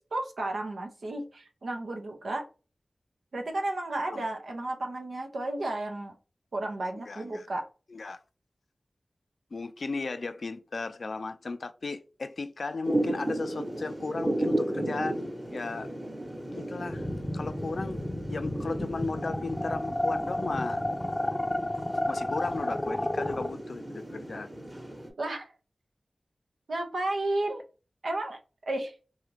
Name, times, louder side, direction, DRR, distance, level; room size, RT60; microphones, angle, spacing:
voice 1, 0.1-2.4 3.3-6.2 6.5-7.7 25.2-25.5 26.7-27.6 28.0-28.4 28.7-29.0, right 2 dB, 90° right, 0.7 m, -32 dB
voice 2, 7.1-7.5 7.9-8.2 9.5-15.9 16.5-17.1 17.3-18.0 18.3-20.8 22.1-24.5, left 3 dB, 80° left, 0.3 m, -35 dB
Thunder / Rain, 12.8-25.1, right 1 dB, 20° right, 1.0 m, -35 dB
sound 1, 16.9-23.5, left 1 dB, 20° left, 0.5 m, -31 dB
2.8 x 2.4 x 3.2 m
wide cardioid pair, 50°, 0 cm